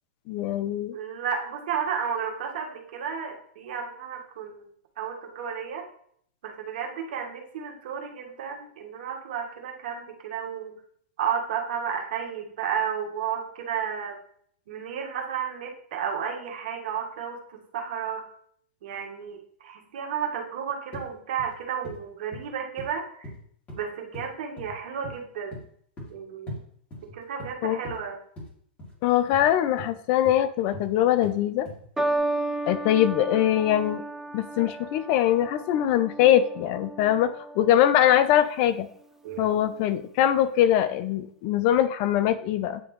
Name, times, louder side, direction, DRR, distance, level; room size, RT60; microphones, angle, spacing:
voice 1, 0.3-0.9 27.6-27.8 29.0-31.7 32.7-34.0 34.3-38.9 39.4-42.8, left 11 dB, 45° left, 12 dB, 0.5 m, -22 dB
voice 2, 0.9-4.7 5.0-5.8 6.4-10.7 11.2-14.2 14.7-18.2 18.8-23.3 23.7-25.6 26.1-26.6 27.0-28.2 39.2-39.5, right 7 dB, 65° right, 2 dB, 1.6 m, -32 dB
sound 1, 20.9-21.1 21.4-21.6 21.8-22.0 22.3-22.5 22.8-22.9 23.2-23.8 24.1-24.3 24.6-24.8 25.0-25.2 25.5-25.6 26.0-26.1 26.5-26.6 26.9-27.5 27.8-28.0 28.4-28.5 28.8-29.0 29.3-29.5 29.8-29.9 30.2-30.4 30.7-30.9 31.2-31.4 31.7-31.9 32.2-32.3, equal, 25° left, 2.6 m, -40 dB
sound 2, 32.0-38.5 39.3-39.7, right 2 dB, 5° right, 0.6 m, -33 dB
9.2 x 3.5 x 3.1 m, 0.62 s
hypercardioid pair, 120°, 6 cm